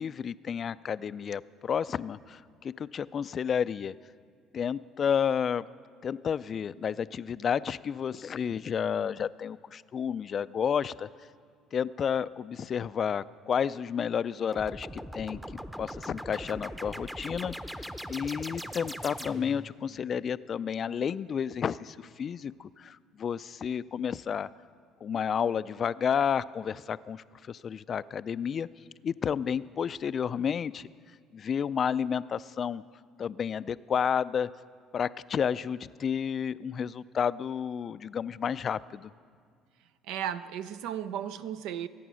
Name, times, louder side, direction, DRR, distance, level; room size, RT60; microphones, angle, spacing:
voice 1, 0.0-3.9 4.5-5.6 6.0-11.1 11.7-15.4 15.8-24.5 25.0-28.7 29.0-30.9 31.3-32.8 33.2-34.5 34.9-39.1, left 7 dB, 45° left, 0.3 m, -31 dB
sound 1, 14.5-19.7, equal, 5° right, 0.7 m, -40 dB
voice 2, 40.1-41.9, right 10 dB, 80° right, 0.6 m, -35 dB
23.0 x 9.3 x 6.3 m
supercardioid pair, 90°, 0 cm